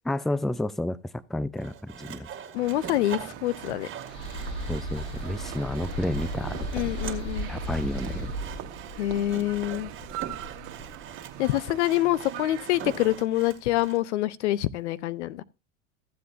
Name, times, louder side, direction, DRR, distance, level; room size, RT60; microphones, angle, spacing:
voice 1, 0.1-2.3 4.7-6.9 7.5-8.3, left 1 dB, ahead, 0.4 m, -31 dB
Sawing, 1.6-14.0, right 8 dB, 35° right, 2.0 m, -43 dB
voice 2, 2.5-3.9 6.7-7.5 9.0-9.9 11.4-15.4, left 15 dB, 85° left, 0.7 m, -26 dB
sound 1, 2.5-13.2, right 14 dB, 70° right, 1.4 m, -42 dB
sound 2, 4.0-11.2, equal, 70° left, 5.5 m, -36 dB
15.0 x 7.8 x 2.6 m
hypercardioid pair, 90°, 34 cm